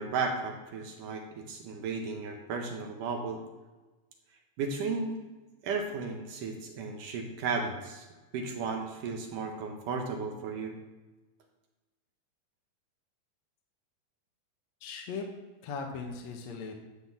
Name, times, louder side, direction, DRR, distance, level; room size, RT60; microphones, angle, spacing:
voice 1, 0.0-3.4 4.6-5.2 5.6-8.1 8.3-10.8, right 4 dB, 65° right, 3 dB, 2.4 m, -34 dB
voice 2, 14.8-15.3 15.6-16.7, left 5 dB, 60° left, 2 dB, 2.0 m, -38 dB
11.5 x 6.2 x 7.4 m, 1.2 s
omnidirectional pair, 4.4 m